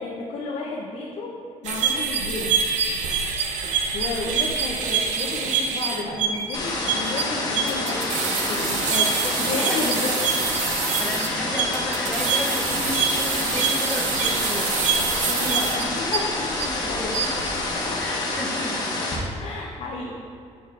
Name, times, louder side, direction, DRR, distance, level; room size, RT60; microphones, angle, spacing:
voice 1, 0.0-1.3 1.6-2.6 3.7-10.3 15.2-17.5 17.8-18.1 19.4-20.1, left 3 dB, 55° left, -2 dB, 0.7 m, -32 dB
sound 1, 1.6-16.7 17.0-17.4, right 6 dB, 75° right, 0.6 m, -25 dB
sound 2, 6.5-19.2, left 2 dB, 30° left, 1.1 m, -27 dB
voice 2, 8.3-10.1 10.9-14.7 16.7-16.9 18.0-18.9, left 1 dB, 10° left, 0 dB, 0.6 m, -34 dB
6.9 x 6.5 x 2.5 m, 2.5 s
cardioid pair, 145°, 12 cm